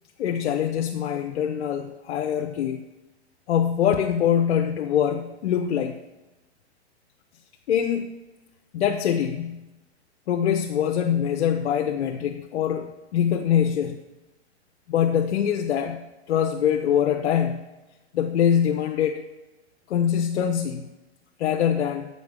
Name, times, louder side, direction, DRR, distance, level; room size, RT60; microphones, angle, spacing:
voice 1, 0.2-2.8 3.5-6.0 7.7-8.1 8.7-9.7 10.3-14.0 14.9-17.7 18.1-19.2 19.9-20.9 21.4-22.1, left 9 dB, 85° left, 3 dB, 0.6 m, -24 dB
7.9 x 5.1 x 3.6 m, 1.1 s
hypercardioid pair, 135°, 34 cm